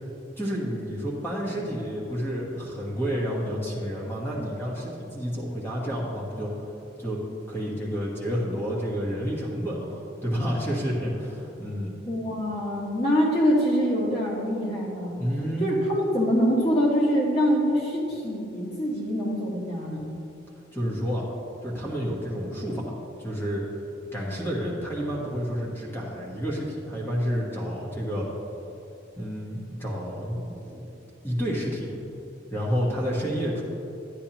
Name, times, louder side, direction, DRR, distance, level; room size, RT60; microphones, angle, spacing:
voice 1, 0.4-6.7 7.0-7.2 7.5-11.9 15.2-15.7 20.7-21.2 21.6-22.9 23.2-23.6 24.1-28.3 29.2-30.9 31.2-32.0 32.5-33.6, equal, 10° left, -5 dB, 1.3 m, -30 dB
voice 2, 12.1-15.2 15.6-20.1, equal, 30° left, -4 dB, 1.5 m, -24 dB
10.0 x 9.6 x 3.0 m, 2.9 s
head